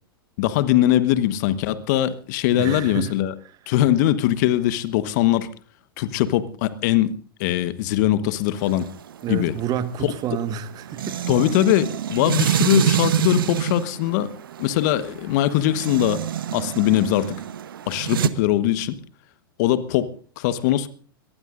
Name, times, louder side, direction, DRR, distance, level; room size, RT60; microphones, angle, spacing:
voice 1, 0.4-3.3 3.7-5.5 6.0-7.1 7.4-8.9 9.3-9.5 11.3-14.3 14.6-16.2 16.5-17.4 17.9-19.0 19.6-20.9, left 13 dB, 50° left, 1.3 m, -21 dB
voice 2, 2.5-3.1 9.2-11.2, right 9 dB, 30° right, 1.5 m, -29 dB
sound 1, 8.6-18.3, right 10 dB, 65° right, 1.1 m, -27 dB
24.5 x 19.0 x 2.6 m
figure-of-eight pair, 95°, 12 cm